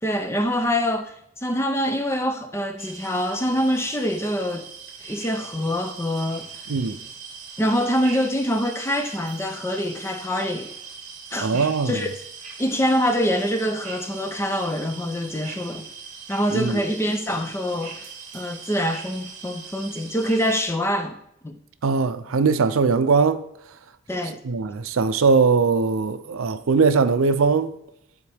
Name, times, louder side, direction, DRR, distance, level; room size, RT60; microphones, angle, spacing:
voice 1, 0.0-4.7 5.0-6.6 7.6-10.7 11.3-12.1 12.6-15.9 16.3-18.1 18.3-21.2 21.4-21.6 24.1-24.4, equal, 10° left, 0.5 m, -25 dB
sound 1, 2.8-20.6, right 5 dB, 35° right, 1.1 m, -40 dB
voice 2, 6.7-7.0 11.4-12.1 16.5-16.8 21.8-23.4 24.4-27.7, right 4 dB, 80° right, 0.5 m, -20 dB
11.5 x 4.4 x 3.5 m
head